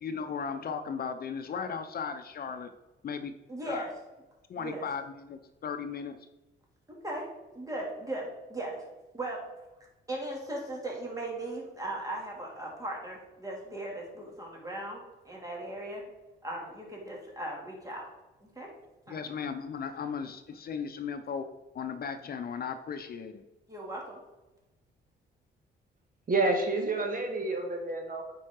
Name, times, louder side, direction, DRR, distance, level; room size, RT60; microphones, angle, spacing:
voice 1, 0.0-2.7 3.0-3.3 3.6-3.9 4.5-6.2 19.1-21.5 21.7-23.4, left 6 dB, 50° left, 8 dB, 0.7 m, -36 dB
voice 2, 3.5-3.9 4.6-4.8 6.9-7.3 7.5-8.7 9.1-9.4 10.1-16.0 16.4-18.0 18.4-18.7 19.1-19.2 23.7-24.2, right 1 dB, 15° right, -2 dB, 2.9 m, -38 dB
voice 3, 26.3-28.3, right 2 dB, 45° right, 2 dB, 1.8 m, -29 dB
9.4 x 4.8 x 4.6 m, 1.0 s
cardioid pair, 90°, 20 cm